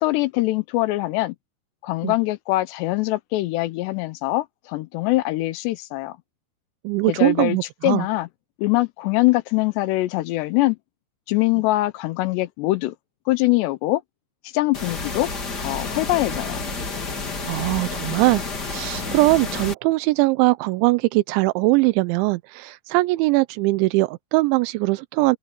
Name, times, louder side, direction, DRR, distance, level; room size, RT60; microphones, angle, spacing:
voice 1, 0.0-1.4 1.8-6.2 7.1-7.6 7.8-8.3 8.6-10.8 11.3-12.9 13.3-14.0 14.5-15.3 15.6-16.6, left 19 dB, 80° left, 2.7 m, -23 dB
voice 2, 6.8-8.1 17.4-25.4, right 22 dB, 90° right, 3.0 m, -21 dB
sound 1, 14.7-19.7, left 4 dB, 25° left, 2.5 m, -30 dB
omnidirectional pair, 5.3 m